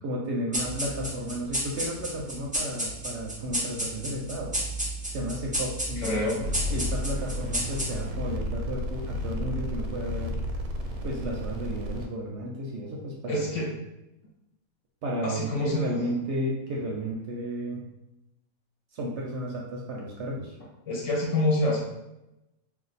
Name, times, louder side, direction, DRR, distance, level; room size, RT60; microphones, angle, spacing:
voice 1, 0.0-4.5 5.0-10.4 11.0-13.5 15.0-17.8 18.9-20.6, equal, 65° right, -2 dB, 0.8 m, -33 dB
sound 1, 0.5-8.3, right 1 dB, 10° right, 0.4 m, -32 dB
voice 2, 6.0-6.4 13.3-13.7 15.2-15.9 20.9-21.8, left 1 dB, 65° left, -2 dB, 1.0 m, -26 dB
sound 2, 6.4-12.1, left 1 dB, 85° right, 1.1 m, -32 dB
2.5 x 2.4 x 4.0 m, 0.92 s
omnidirectional pair, 1.5 m